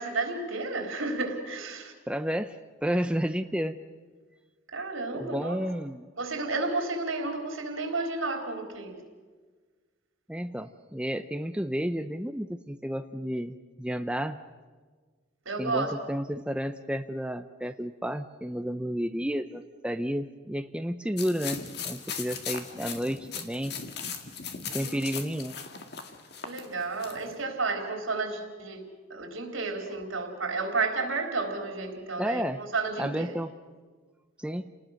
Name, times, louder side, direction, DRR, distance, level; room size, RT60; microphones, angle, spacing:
voice 1, 0.0-1.9 4.7-5.6 6.2-9.0 15.5-15.9 24.7-24.9 26.4-28.8 29.1-32.4 32.7-33.3, right 3 dB, 85° right, 4 dB, 4.0 m, -32 dB
voice 2, 2.1-3.8 5.1-6.1 10.3-14.4 15.6-23.7 24.6-25.6 32.2-32.6 33.0-33.5 34.4-34.7, equal, 5° right, 8 dB, 0.6 m, -31 dB
sound 1, 21.2-27.3, left 6 dB, 55° left, 2.0 m, -38 dB
29.5 x 19.5 x 6.5 m, 1.4 s
head